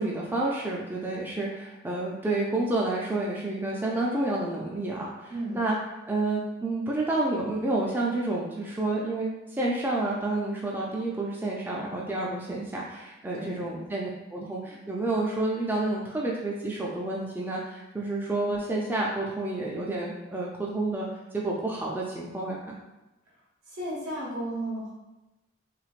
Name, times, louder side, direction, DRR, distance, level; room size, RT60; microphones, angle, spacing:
voice 1, 0.0-5.7 6.1-22.7, right 2 dB, 10° right, -3 dB, 0.3 m, -29 dB
voice 2, 23.7-24.9, right 1 dB, 85° right, -7 dB, 1.4 m, -33 dB
3.3 x 3.1 x 2.4 m, 1.0 s
head